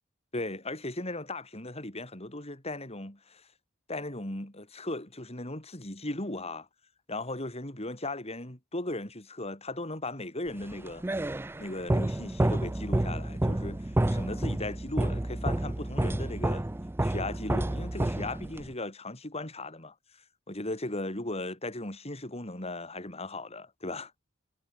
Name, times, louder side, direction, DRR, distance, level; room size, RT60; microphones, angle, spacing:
voice 1, 0.3-3.5 3.9-6.7 7.1-11.0 11.6-16.7 17.0-19.9 20.5-24.1, left 2 dB, 30° left, 5.4 m, -37 dB
sound 1, 10.6-18.7, right 1 dB, 10° right, 0.4 m, -30 dB
head